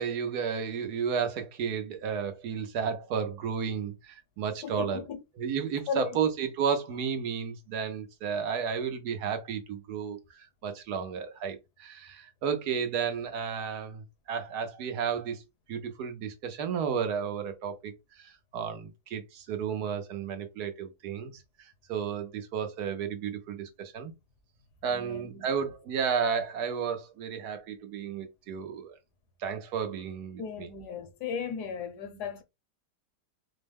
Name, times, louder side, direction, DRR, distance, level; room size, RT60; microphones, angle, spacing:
voice 1, 0.0-5.0 5.4-15.4 15.7-24.1 24.8-28.9 29.4-30.7, right 7 dB, 75° right, 1.2 m, -33 dB
voice 2, 4.6-5.2 5.9-6.2 24.9-25.5 30.4-32.4, left 6 dB, 75° left, 1.4 m, -36 dB
4.4 x 2.1 x 3.4 m
omnidirectional pair, 1.8 m